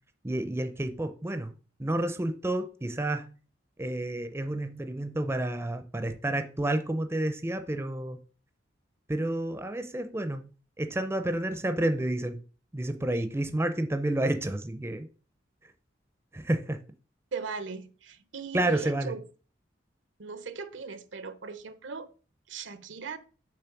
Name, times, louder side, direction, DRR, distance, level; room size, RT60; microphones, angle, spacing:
voice 1, 0.2-1.5 1.8-3.3 3.8-8.2 9.1-10.5 10.8-12.4 12.7-15.1 16.3-16.8 18.5-19.1, right 1 dB, 15° right, 8 dB, 0.5 m, -30 dB
voice 2, 17.3-19.2 20.2-22.1 22.5-23.2, right 5 dB, 80° right, 12 dB, 0.7 m, -38 dB
6.9 x 3.2 x 5.9 m, 0.38 s
head